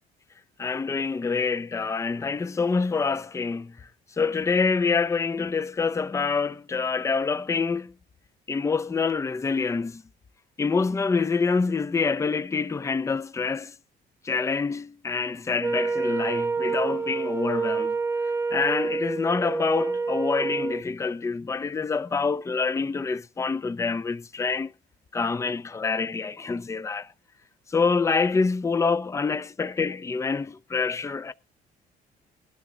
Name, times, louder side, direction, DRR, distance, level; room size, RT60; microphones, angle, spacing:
voice 1, 0.6-3.7 4.2-7.9 8.5-10.0 10.6-13.7 14.2-18.0 18.5-24.7 25.1-27.1 27.7-31.3, left 4 dB, 15° left, 0.6 m, -26 dB
Wind instrument woodwind instrument, 15.6-20.8, right 4 dB, 15° right, 1.0 m, -27 dB
20.0 x 12.5 x 2.4 m
cardioid pair, 110°, 17 cm